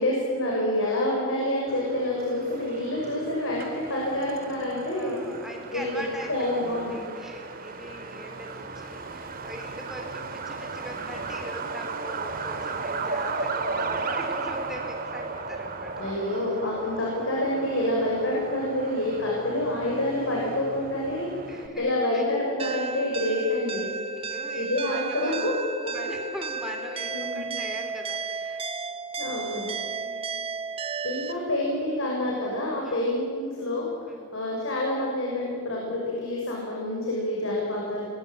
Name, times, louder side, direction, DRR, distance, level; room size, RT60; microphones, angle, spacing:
voice 1, 0.0-5.2 5.7-7.0 16.0-23.9 24.5-25.5 27.1-27.6 29.2-29.7 31.0-38.0, left 1 dB, 60° left, -3 dB, 6.1 m, -28 dB
Truck, 1.7-21.7, right 3 dB, 40° right, 2.1 m, -35 dB
voice 2, 4.9-16.2 21.5-22.4 24.1-25.5 25.8-28.7 29.9-30.4 32.8-33.1 34.1-34.3, equal, ahead, 2 dB, 4.0 m, -41 dB
sound 1, 22.6-31.3, right 4 dB, 25° right, 0.9 m, -33 dB
28.5 x 22.0 x 9.2 m, 2.3 s
head